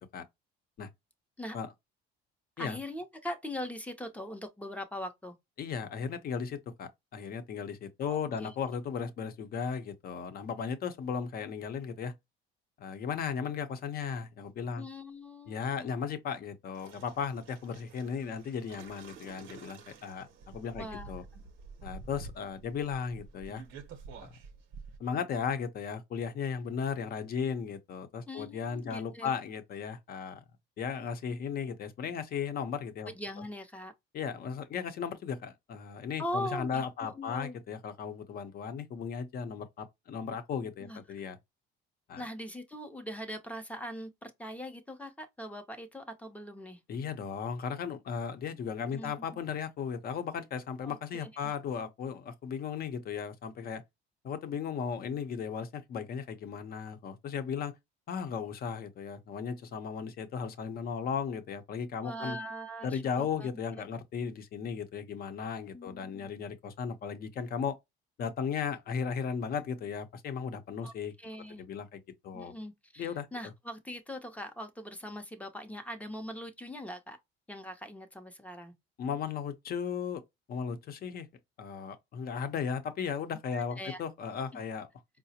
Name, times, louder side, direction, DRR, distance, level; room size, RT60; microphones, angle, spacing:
voice 1, 2.6-5.4 8.0-8.5 14.8-15.7 20.7-21.4 28.3-29.3 33.1-33.9 36.2-37.6 40.8-41.0 42.1-46.8 48.8-49.1 50.8-51.5 62.0-63.8 65.7-66.3 70.8-70.9 71.2-71.6 72.3-77.2 77.5-78.7 83.5-84.0 84.5-84.6, equal, 5° left, 0.6 m, -41 dB
voice 2, 5.6-12.1 12.8-14.8 15.5-20.3 20.5-21.2 21.8-23.6 24.2-24.3 25.0-30.4 30.8-33.1 34.1-41.4 42.1-42.3 46.9-53.8 54.2-57.7 58.1-62.4 62.8-67.8 68.2-71.1 71.6-72.5 73.0-73.3 79.0-80.2 80.5-81.3 81.6-84.9, left 6 dB, 45° left, 0.7 m, -36 dB
sound 1, 16.7-25.0, right 4 dB, 65° right, 0.8 m, -49 dB
4.7 x 2.0 x 2.7 m
cardioid pair, 120°, 21 cm